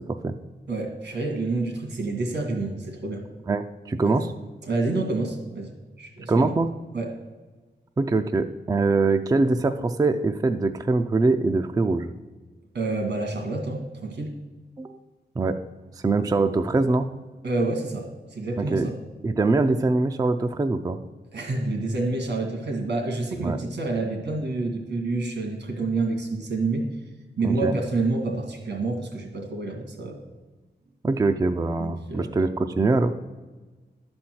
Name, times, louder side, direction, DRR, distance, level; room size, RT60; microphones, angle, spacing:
voice 1, 0.7-3.2 4.0-4.3 4.6-6.5 6.9-7.1 12.7-14.3 17.4-19.0 21.3-26.9 27.4-30.2 31.8-32.3, right 3 dB, 80° right, 3 dB, 2.1 m, -28 dB
voice 2, 3.5-4.3 6.3-6.7 8.0-12.1 14.8-15.0 15.4-15.6 16.0-17.1 18.6-18.9 19.2-21.0 23.4-23.6 27.4-27.7 31.0-33.1, right 3 dB, 20° right, 8 dB, 0.4 m, -23 dB
11.5 x 4.4 x 7.7 m, 1.3 s
wide cardioid pair, 160°, 18 cm